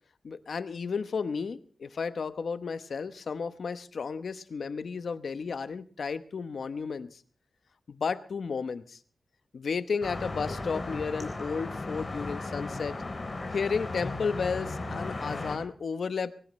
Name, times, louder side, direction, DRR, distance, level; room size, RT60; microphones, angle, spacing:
voice 1, 0.2-7.2 7.9-9.0 9.5-13.0 13.5-16.3, left 5 dB, 75° left, 12 dB, 0.9 m, -33 dB
sound 1, 10.0-15.6, left 2 dB, 35° left, 3.7 m, -36 dB
22.0 x 17.0 x 3.2 m, 0.44 s
wide cardioid pair, 120°, 0 cm